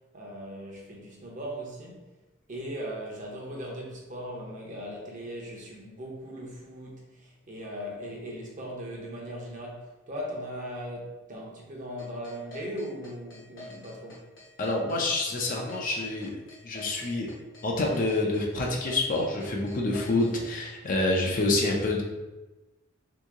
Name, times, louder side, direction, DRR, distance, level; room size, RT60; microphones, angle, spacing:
voice 1, 0.1-2.1 2.5-14.2, equal, 40° right, -2 dB, 0.8 m, -39 dB
sound 1, 12.0-20.3, left 2 dB, 65° left, 1.1 m, -46 dB
voice 2, 14.6-16.3 16.6-17.3 17.6-22.0, left 2 dB, 40° left, 0 dB, 0.5 m, -27 dB
2.9 x 2.7 x 3.6 m, 1.1 s
head